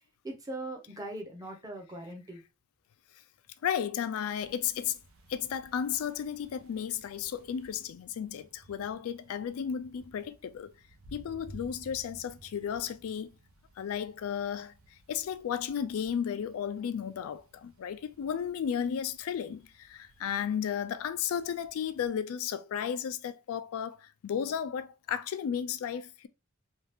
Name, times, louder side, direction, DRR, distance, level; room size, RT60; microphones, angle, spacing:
voice 1, 0.2-2.4, right 1 dB, 15° right, 0.6 m, -40 dB
voice 2, 3.6-5.0 5.3-10.7 11.1-13.3 13.8-14.7 15.1-26.3, left 8 dB, 80° left, 0.3 m, -34 dB
sound 1, 4.3-22.1, right 1 dB, 80° right, 0.6 m, -57 dB
2.7 x 2.4 x 3.3 m
head